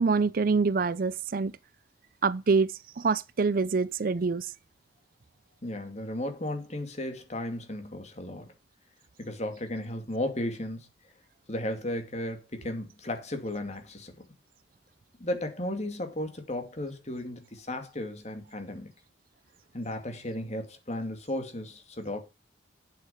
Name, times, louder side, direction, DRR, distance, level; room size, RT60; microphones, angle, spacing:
voice 1, 0.0-1.5 2.2-4.5, right 4 dB, 50° right, 0.5 m, -26 dB
voice 2, 5.6-8.5 9.2-10.9 11.5-14.3 15.2-18.9 19.7-22.2, left 1 dB, 35° left, 2.4 m, -35 dB
8.6 x 7.9 x 5.6 m
head